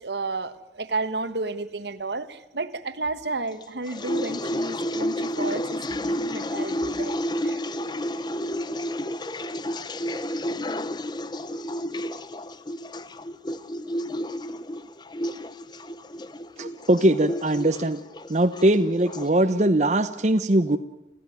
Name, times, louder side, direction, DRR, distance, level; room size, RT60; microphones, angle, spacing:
voice 1, 0.0-7.2 7.4-7.6, right 3 dB, 70° right, 12 dB, 1.5 m, -32 dB
sound 1, 3.6-19.3, left 1 dB, 25° left, 0.8 m, -31 dB
voice 2, 16.6-18.0 18.3-20.8, right 1 dB, 40° right, 8 dB, 0.9 m, -21 dB
27.5 x 15.5 x 9.3 m, 0.89 s
head